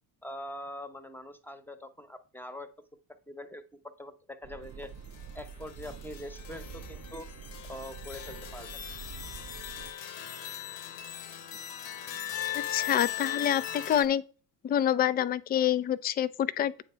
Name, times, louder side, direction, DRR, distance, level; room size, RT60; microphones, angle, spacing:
voice 1, 0.2-2.7 3.3-3.6 4.0-4.9 5.3-7.3 7.7-8.8, left 1 dB, 5° left, 0.9 m, -43 dB
sound 1, 4.4-9.9, right 7 dB, 35° right, 0.6 m, -46 dB
sound 2, 5.1-14.0, left 11 dB, 80° left, 1.0 m, -39 dB
voice 2, 12.7-14.2 14.6-16.8, left 10 dB, 20° left, 0.4 m, -27 dB
8.5 x 3.4 x 4.4 m
hypercardioid pair, 60°, 50 cm